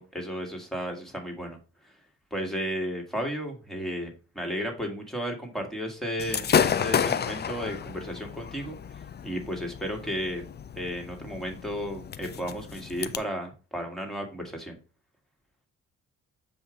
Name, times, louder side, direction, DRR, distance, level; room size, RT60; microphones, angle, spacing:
voice 1, 0.0-1.6 2.3-10.5 10.8-14.8, equal, ahead, 1 dB, 1.9 m, -34 dB
Gunshot gunfire / Fireworks, 6.2-13.2, left 7 dB, 35° left, 0.5 m, -30 dB
7.0 x 2.8 x 5.0 m, 0.34 s
cardioid pair, 85°, 29 cm